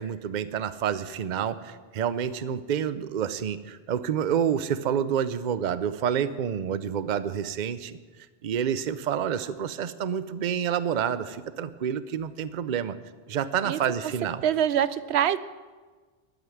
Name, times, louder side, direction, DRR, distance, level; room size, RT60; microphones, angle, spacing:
voice 1, 0.0-8.0 8.4-13.0 13.3-14.4, right 8 dB, 50° right, 14 dB, 0.7 m, -28 dB
voice 2, 14.4-15.4, right 10 dB, 85° right, 15 dB, 0.8 m, -24 dB
11.5 x 9.0 x 9.2 m, 1.4 s
omnidirectional pair, 1.1 m